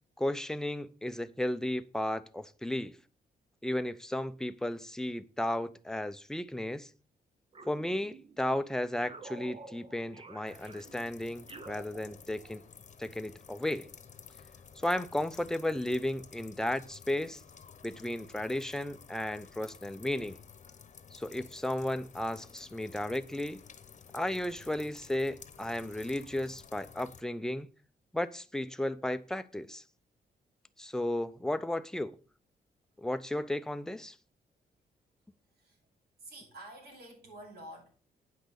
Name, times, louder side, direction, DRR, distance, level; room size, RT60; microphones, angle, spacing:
voice 1, 0.2-3.0 3.6-6.9 7.7-12.6 13.0-13.9 14.8-17.4 17.8-20.4 21.1-23.6 24.1-27.7 28.1-29.8 30.8-32.2 33.0-34.1, left 1 dB, 5° left, 0.7 m, -34 dB
sound 1, 7.5-8.5 9.0-12.6, right 3 dB, 35° right, 1.0 m, -51 dB
sound 2, 10.5-27.2, left 6 dB, 50° left, 1.0 m, -53 dB
voice 2, 36.2-37.9, right 1 dB, 80° right, 5.9 m, -49 dB
9.3 x 6.0 x 6.6 m
cardioid pair, 110°, 16 cm